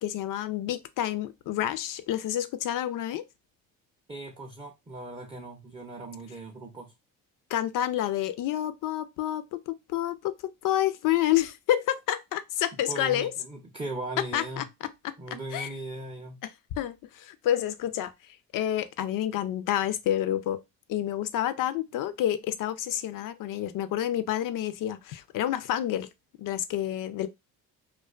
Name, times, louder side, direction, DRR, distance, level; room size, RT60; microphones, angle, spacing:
voice 1, 0.0-3.2 7.5-13.3 14.3-14.6 15.0-15.1 15.5-15.7 16.4-16.5 16.8-18.1 18.5-20.6 20.9-26.1 26.4-27.3, left 12 dB, 55° left, 0.5 m, -29 dB
voice 2, 4.1-6.9 12.7-14.7 15.2-16.4, right 2 dB, 15° right, 0.5 m, -38 dB
2.4 x 2.2 x 2.3 m
supercardioid pair, 70°, 39 cm